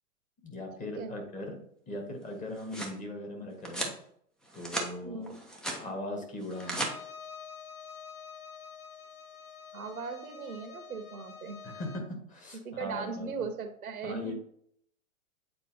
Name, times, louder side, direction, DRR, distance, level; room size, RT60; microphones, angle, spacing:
voice 1, 0.4-1.6 1.9-3.9 4.5-5.3 5.8-6.8 11.6-13.3 14.0-14.3, left 1 dB, 20° left, 2 dB, 1.5 m, -39 dB
sound 1, 2.3-3.0 3.6-4.0 4.4-4.9 5.3-5.8 6.4-6.9, right 1 dB, ahead, 0.5 m, -36 dB
voice 2, 5.0-5.4 9.7-11.6 12.6-14.3, right 5 dB, 80° right, 7 dB, 1.2 m, -38 dB
Bowed string instrument, 6.5-12.1, left 6 dB, 75° left, 1.1 m, -47 dB
8.4 x 4.1 x 2.8 m, 0.66 s
hypercardioid pair, 120°, 42 cm